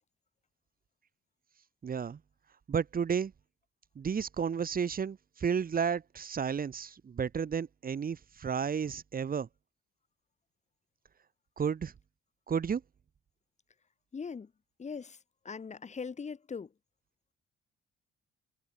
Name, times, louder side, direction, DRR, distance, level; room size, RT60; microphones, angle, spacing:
voice 1, 1.8-2.2 2.7-3.3 3.9-9.5 11.6-11.9 12.5-12.8, right 7 dB, 45° right, 4.6 m, -32 dB
voice 2, 14.1-14.5 14.8-15.2 15.4-16.7, left 5 dB, 35° left, 2.8 m, -40 dB
cardioid pair, 90°, 20 cm